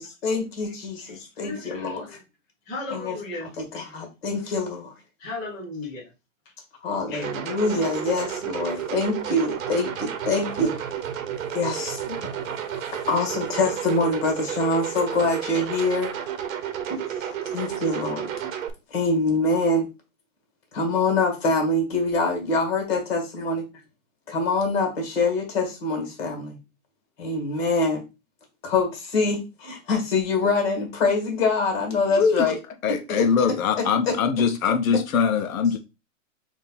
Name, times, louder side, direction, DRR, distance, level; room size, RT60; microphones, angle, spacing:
voice 1, 0.0-2.1 2.9-3.2 3.6-4.9 6.8-10.7 11.5-12.0 12.8-16.1 16.9-18.3 18.9-19.9 20.7-23.7 24.3-26.6 27.2-28.0 28.6-32.6 32.9-33.3 34.1-34.2, left 3 dB, 50° left, 2.0 m, -25 dB
voice 2, 1.0-2.2 2.7-3.5 5.2-6.0 7.1-7.3, left 2 dB, 10° left, 0.5 m, -36 dB
sound 1, 7.2-18.7, right 9 dB, 75° right, 0.9 m, -31 dB
voice 3, 32.1-32.5 32.8-35.8, left 6 dB, 90° left, 0.8 m, -22 dB
3.7 x 2.7 x 4.1 m
hypercardioid pair, 165°, 40 cm